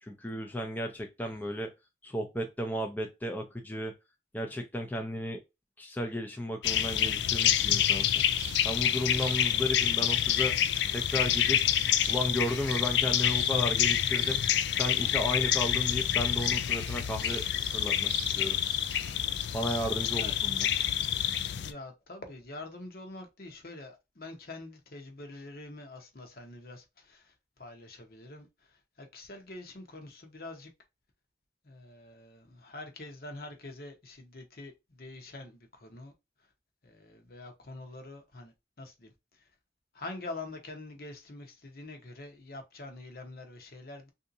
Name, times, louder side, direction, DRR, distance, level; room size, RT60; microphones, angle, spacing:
voice 1, 0.0-1.7 2.0-3.9 4.3-5.4 5.8-8.2 8.6-10.5 10.9-11.6 12.1-14.4 14.7-17.4 17.7-18.6 19.5-20.7, left 1 dB, 10° left, 0.5 m, -34 dB
sound 1, 6.6-21.7, left 10 dB, 80° left, 0.4 m, -28 dB
sound 2, 7.6-19.9, right 8 dB, 75° right, 0.6 m, -48 dB
voice 2, 21.6-30.7 31.6-36.1 36.4-36.5 36.8-39.5 39.9-44.1, left 2 dB, 55° left, 1.0 m, -45 dB
3.5 x 2.7 x 2.6 m
head